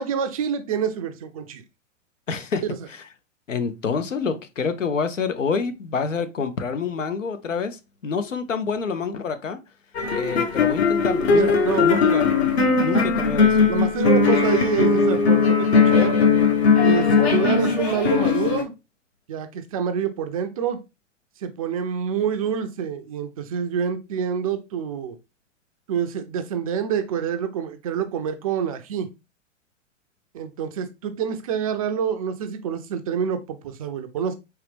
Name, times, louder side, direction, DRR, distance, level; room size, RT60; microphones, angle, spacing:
voice 1, 0.0-1.6 11.3-12.2 12.9-13.0 13.7-16.2 16.8-18.7 19.3-20.8 21.4-25.2 25.9-29.1 30.3-34.4, right 7 dB, 30° right, 0.4 m, -27 dB
voice 2, 2.3-2.6 3.5-9.6 10.1-11.5 11.8-12.3 12.8-13.6, left 5 dB, 80° left, 0.8 m, -27 dB
sound 1, 9.9-18.6, left 5 dB, 55° left, 1.1 m, -19 dB
4.7 x 3.1 x 3.3 m
figure-of-eight pair, 110°, 38 cm